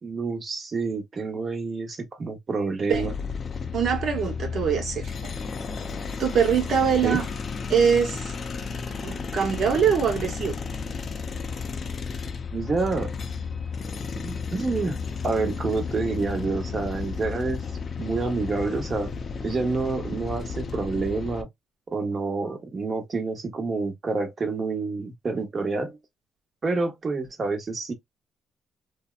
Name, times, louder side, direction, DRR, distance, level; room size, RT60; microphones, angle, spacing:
voice 1, 0.0-3.1 7.0-7.2 12.5-13.1 14.1-15.0 15.2-17.6 18.0-19.1 19.4-21.5 21.9-26.0 26.6-27.9, right 3 dB, 40° right, 1.0 m, -28 dB
sound 1, 2.9-21.4, left 5 dB, 45° left, 0.5 m, -33 dB
voice 2, 3.7-5.3 6.2-7.3 7.7-8.3 9.0-10.5, right 7 dB, 65° right, 1.0 m, -23 dB
2.8 x 2.1 x 2.3 m
cardioid pair, 90°, 0 cm